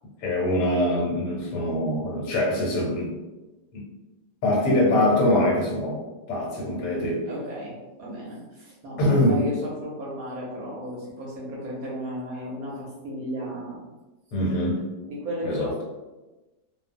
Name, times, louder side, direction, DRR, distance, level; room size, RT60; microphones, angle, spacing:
voice 1, 0.2-3.1 3.7-3.8 4.4-6.0 6.3-7.2 9.0-9.4 14.3-14.8 15.4-15.8, left 1 dB, 90° left, -3 dB, 1.5 m, -23 dB
voice 2, 7.3-13.8 15.1-15.8, equal, 65° right, -4 dB, 1.0 m, -34 dB
3.0 x 2.0 x 2.5 m, 1.1 s
omnidirectional pair, 1.8 m